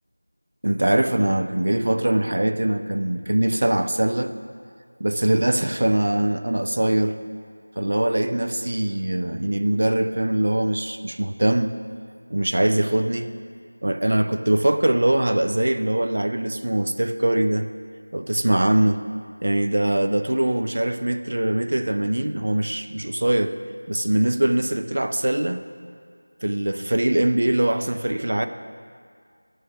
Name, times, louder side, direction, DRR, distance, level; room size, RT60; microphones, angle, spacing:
voice 1, 0.6-4.3 5.0-7.2 7.8-11.7 12.3-13.3 13.8-17.7 18.1-19.1 19.4-23.6 23.9-25.6 26.4-28.5, right 1 dB, 55° right, 9 dB, 0.3 m, -22 dB
9.4 x 3.2 x 5.6 m, 2.1 s
figure-of-eight pair, 175°, 0 cm